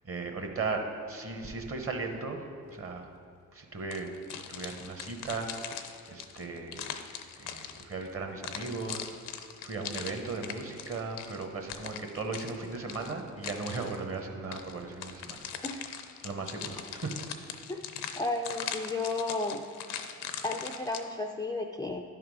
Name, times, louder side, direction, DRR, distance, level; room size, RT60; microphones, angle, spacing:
voice 1, 0.0-3.1 3.5-5.8 6.1-6.9 7.4-15.4 16.2-17.5, right 3 dB, 35° right, 4 dB, 1.1 m, -37 dB
sound 1, 3.9-8.1 8.4-14.0 14.5-21.0, left 9 dB, 85° left, 0.6 m, -41 dB
voice 2, 18.2-19.7 20.4-22.0, left 2 dB, 10° left, 4 dB, 0.4 m, -33 dB
10.5 x 3.7 x 4.8 m, 2.3 s
supercardioid pair, 55°, 39 cm